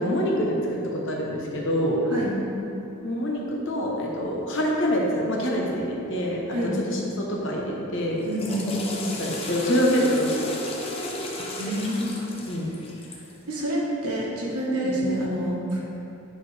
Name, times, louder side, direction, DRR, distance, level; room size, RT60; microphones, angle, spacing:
voice 1, 0.0-2.0 3.0-8.2 9.2-10.7 12.5-12.7 14.8-14.9, equal, 55° left, -2 dB, 0.9 m, -26 dB
Water / Toilet flush, 8.1-13.4, left 1 dB, 25° left, 0.6 m, -34 dB
voice 2, 8.2-8.8 11.6-12.2 13.5-15.8, equal, 90° right, -4 dB, 1.4 m, -27 dB
9.0 x 4.2 x 3.3 m, 2.9 s
head